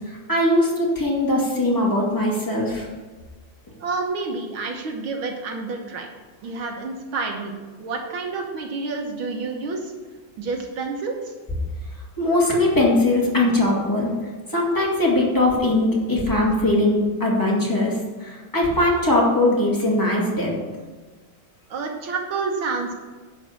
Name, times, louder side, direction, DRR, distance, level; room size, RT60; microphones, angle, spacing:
voice 1, 0.3-2.9 12.2-14.1 14.5-17.9 18.2-20.5, left 1 dB, 10° left, -4 dB, 2.3 m, -20 dB
voice 2, 3.8-6.1 6.4-9.9 10.4-11.3 21.7-22.9, right 4 dB, 80° right, 2 dB, 2.0 m, -29 dB
11.0 x 4.9 x 7.0 m, 1.3 s
omnidirectional pair, 2.2 m